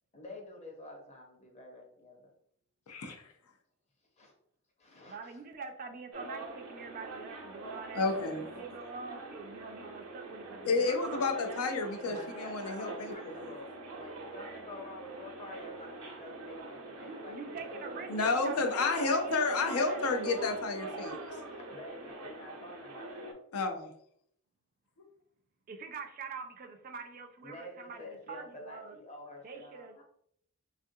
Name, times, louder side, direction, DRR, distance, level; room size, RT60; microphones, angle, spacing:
voice 1, 0.1-2.3 3.1-3.2 4.2-4.3 4.8-5.3 12.0-13.7 13.9-17.4 17.6-17.8 21.7-23.3 27.4-30.0, left 1 dB, 30° left, 1 dB, 0.7 m, -48 dB
voice 2, 5.1-11.4 17.1-20.2 25.7-29.0 29.4-30.0, right 5 dB, 40° right, 5 dB, 0.4 m, -45 dB
sound 1, 6.1-23.3, right 2 dB, 85° right, 0.7 m, -43 dB
voice 3, 7.9-8.4 10.7-13.1 13.4-13.5 18.1-21.2 23.5-23.9, left 3 dB, 70° left, 5 dB, 0.5 m, -31 dB
3.5 x 2.4 x 2.6 m, 0.67 s
head